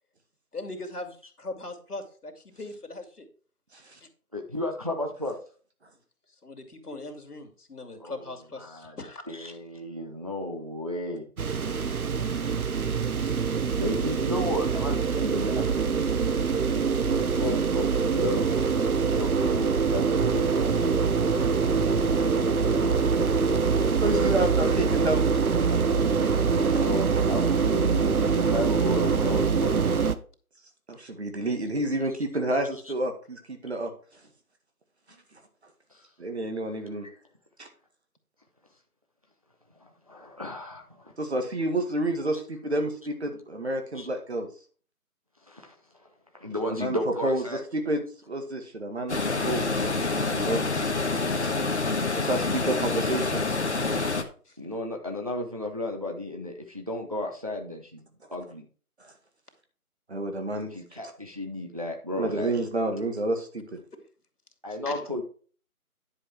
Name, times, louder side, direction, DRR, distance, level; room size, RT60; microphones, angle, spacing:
voice 1, 0.5-3.3 4.0-4.1 6.4-9.2 9.5-9.6 54.5-54.6 64.9-65.1, left 2 dB, 85° left, 6 dB, 2.4 m, -40 dB
voice 2, 4.3-5.3 8.0-8.3 8.6-9.0 9.3-11.3 13.8-15.5 16.8-20.8 26.7-29.9 35.1-35.2 35.9-36.0 39.8-41.1 43.9-44.1 45.5-47.6 54.6-58.1 58.3-58.6 60.7-62.5 64.6-65.2, left 1 dB, 25° right, 2 dB, 0.8 m, -34 dB
sound 1, 11.4-30.2, right 5 dB, 70° right, 0.9 m, -24 dB
voice 3, 14.9-15.6 24.0-25.3 26.6-27.0 30.9-33.9 36.2-37.1 37.6-37.7 41.2-44.5 46.8-47.0 47.2-48.0 48.3-49.2 49.4-49.7 50.1-50.9 51.4-51.5 52.1-53.8 59.0-59.1 60.1-60.7 62.2-63.8, right 1 dB, 45° right, 5 dB, 1.8 m, -30 dB
sound 2, 49.1-54.2, left 3 dB, 50° left, 1.2 m, -27 dB
10.5 x 5.3 x 4.6 m, 0.41 s
figure-of-eight pair, 170°, 45 cm